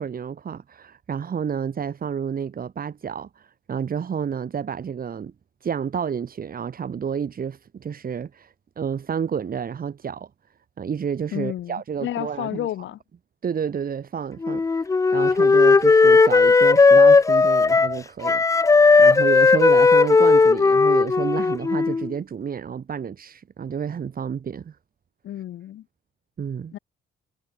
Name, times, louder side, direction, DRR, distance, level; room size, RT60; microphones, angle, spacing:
voice 1, 0.0-5.3 5.6-10.3 10.8-12.7 13.4-24.8 26.4-26.7, right 7 dB, 45° right, 2.8 m, -30 dB
voice 2, 11.3-13.0 25.2-25.9 26.7-26.8, left 12 dB, 75° left, 2.0 m, -31 dB
Wind instrument woodwind instrument, 14.4-18.0 18.2-22.1, left 4 dB, 15° left, 0.4 m, -16 dB
cardioid pair, 90°, 20 cm